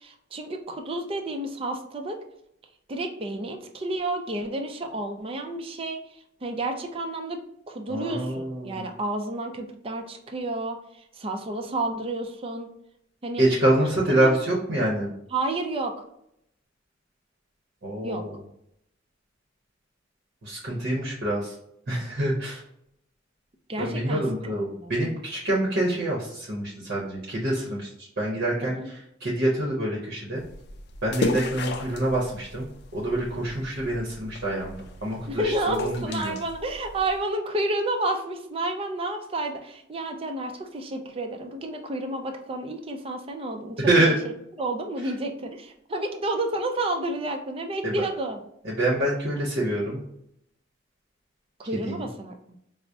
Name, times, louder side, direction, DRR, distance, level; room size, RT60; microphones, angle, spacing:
voice 1, 0.0-2.2 2.9-6.0 6.4-10.8 11.1-12.7 13.2-13.4 14.1-14.4 15.3-15.9 18.0-18.2 23.7-24.2 24.5-24.9 28.6-28.9 35.3-44.0 44.6-48.4 51.6-52.4, right 2 dB, 30° right, 4 dB, 0.5 m, -30 dB
voice 2, 7.9-8.9 13.4-15.1 17.8-18.3 20.4-21.5 21.9-22.6 23.8-30.4 31.0-32.7 32.9-34.7 35.0-36.3 43.8-44.1 47.8-48.0 48.6-50.0 51.8-52.0, right 1 dB, 55° right, -4 dB, 0.8 m, -26 dB
sound 1, 30.4-37.2, left 3 dB, 60° left, 0.4 m, -35 dB
4.7 x 2.0 x 2.6 m, 0.75 s
head